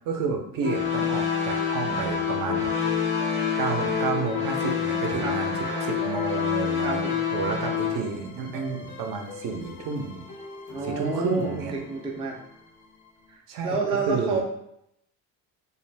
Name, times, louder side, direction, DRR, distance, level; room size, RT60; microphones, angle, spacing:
voice 1, 0.0-2.7 3.6-7.0 7.3-10.2 10.8-11.7 13.5-13.8 14.1-14.4, right 5 dB, 65° right, 4 dB, 0.6 m, -30 dB
sound 1, 0.6-8.0, left 6 dB, 35° left, 0.6 m, -27 dB
sound 2, 2.1-13.4, left 2 dB, 80° left, 0.7 m, -43 dB
voice 2, 6.8-7.2 10.7-12.4 13.3-14.4, right 4 dB, 15° right, -1 dB, 0.4 m, -29 dB
2.5 x 2.4 x 3.2 m, 0.77 s
cardioid pair, 135°, 36 cm